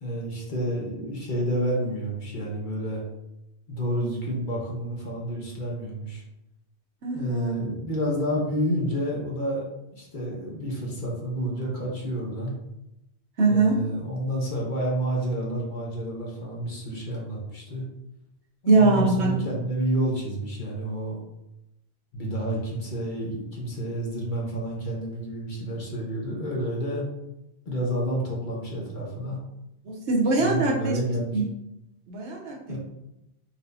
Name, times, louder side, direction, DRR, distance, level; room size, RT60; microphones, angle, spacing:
voice 1, 0.0-3.0 3.7-6.2 7.1-9.6 9.9-12.5 13.5-17.8 18.6-21.2 22.1-27.0 27.7-29.4 30.4-31.4 32.7-32.8, right 1 dB, 50° left, -3 dB, 1.1 m, -29 dB
voice 2, 7.0-7.6 13.4-13.8 18.7-19.3 29.9-30.7 31.3-31.5 32.1-32.8, right 3 dB, 90° right, -1 dB, 1.2 m, -22 dB
4.5 x 3.3 x 2.7 m, 0.88 s
omnidirectional pair, 1.1 m